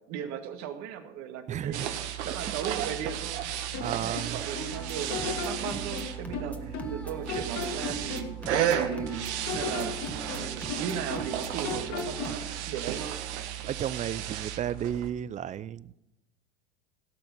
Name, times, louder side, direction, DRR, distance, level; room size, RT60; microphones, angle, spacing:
voice 1, 0.1-1.9 2.2-3.5 3.8-13.1, right 8 dB, 50° right, 2.0 m, -37 dB
voice 2, 1.5-1.9 2.3-2.4 3.8-4.4 13.7-15.9, right 10 dB, 20° right, 0.4 m, -33 dB
sound 1, 1.7-15.1, right 10 dB, 75° right, 1.6 m, -34 dB
sound 2, 3.7-4.7 5.1-7.0 7.3-9.1 9.5-11.4 11.6-12.5, left 4 dB, 50° left, 2.3 m, -36 dB
sound 3, 4.7-12.3, equal, 5° left, 1.6 m, -43 dB
17.0 x 7.0 x 6.1 m
hypercardioid pair, 100°, 34 cm